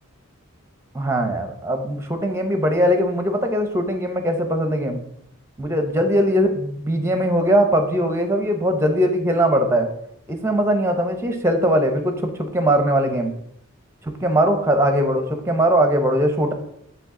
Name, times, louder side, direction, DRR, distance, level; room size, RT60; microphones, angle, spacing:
voice 1, 0.9-5.0 5.6-9.9 10.3-13.3 14.2-16.5, equal, 10° right, 5 dB, 0.7 m, -20 dB
9.9 x 3.7 x 3.7 m, 0.76 s
head